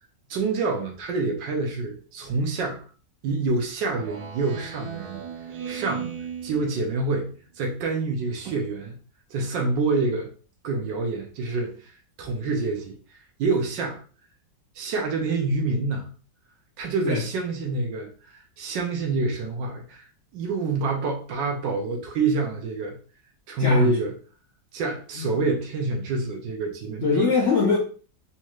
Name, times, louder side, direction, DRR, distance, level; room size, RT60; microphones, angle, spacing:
voice 1, 0.3-2.8 3.2-5.2 5.7-6.1 6.4-7.3 7.6-9.0 9.3-10.3 10.6-11.9 12.2-13.0 13.4-14.0 14.7-16.1 16.8-18.1 18.3-20.0 20.3-23.0 23.5-24.1 24.7-27.3, right 3 dB, 85° right, 2 dB, 1.4 m, -27 dB
Speech synthesizer, 3.8-7.4, right 7 dB, 70° right, 1.0 m, -37 dB
voice 2, 23.6-24.0 25.2-25.3 27.0-27.8, left 4 dB, 65° left, -2 dB, 0.7 m, -22 dB
4.1 x 2.4 x 3.0 m, 0.39 s
omnidirectional pair, 1.9 m